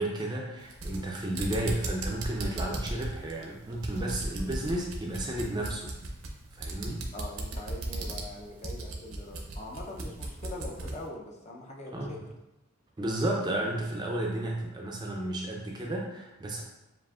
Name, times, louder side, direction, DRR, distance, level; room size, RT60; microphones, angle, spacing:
voice 1, 0.0-5.9 6.5-7.0 11.9-12.1 13.0-16.6, right 1 dB, 20° right, -1 dB, 0.5 m, -32 dB
sound 1, 0.6-11.0, right 2 dB, 70° right, 0.7 m, -37 dB
voice 2, 7.1-12.2, left 2 dB, 30° left, -1 dB, 0.6 m, -42 dB
7.2 x 2.6 x 2.4 m, 0.95 s
head